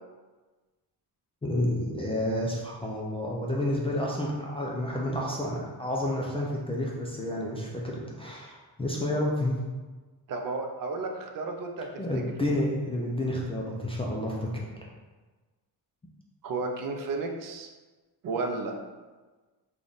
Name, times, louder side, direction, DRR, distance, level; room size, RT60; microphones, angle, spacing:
voice 1, 1.4-9.6 12.0-14.5, left 1 dB, 15° left, -4 dB, 0.3 m, -30 dB
voice 2, 10.3-11.9 16.4-17.7 18.2-18.8, right 3 dB, 55° right, 4 dB, 0.5 m, -32 dB
3.4 x 2.3 x 3.9 m, 1.3 s
cardioid pair, 145°, 40 cm